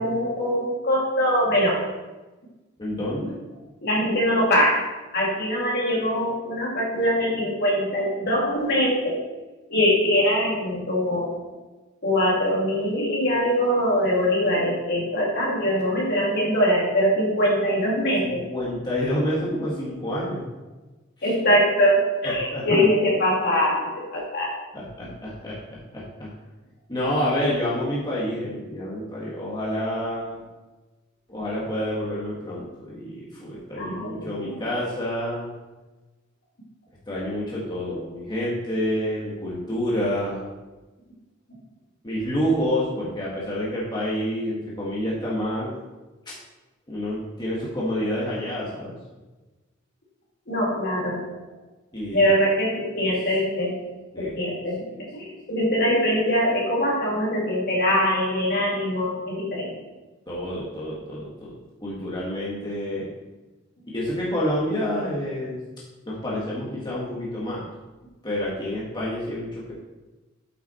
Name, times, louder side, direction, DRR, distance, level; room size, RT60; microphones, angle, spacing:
voice 1, 0.0-1.8 3.8-4.8 5.1-9.2 9.7-11.3 12.0-18.4 21.2-24.6 33.8-34.6 50.5-51.2 52.1-53.8 54.2-59.7, equal, 55° left, -4 dB, 2.7 m, -22 dB
voice 2, 2.8-3.4 18.2-20.4 21.2-21.3 22.2-22.7 24.7-26.3 26.9-30.4 31.3-35.5 37.1-40.4 42.0-45.7 46.9-49.0 51.9-52.3 54.1-54.3 60.3-63.1 63.9-65.6 66.0-67.6 68.2-69.7, equal, 20° left, -7 dB, 1.7 m, -28 dB
8.3 x 6.1 x 4.4 m, 1.2 s
head